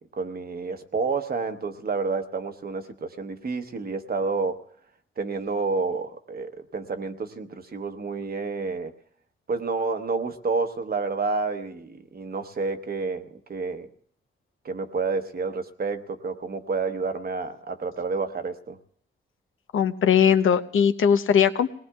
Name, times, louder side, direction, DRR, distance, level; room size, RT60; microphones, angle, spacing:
voice 1, 0.2-4.6 5.2-8.9 9.5-13.9 14.6-18.8, right 4 dB, 45° right, 7 dB, 1.0 m, -29 dB
voice 2, 19.7-21.7, left 8 dB, 80° left, 10 dB, 0.8 m, -20 dB
29.0 x 19.0 x 2.4 m, 0.63 s
cardioid pair, 95°, 21 cm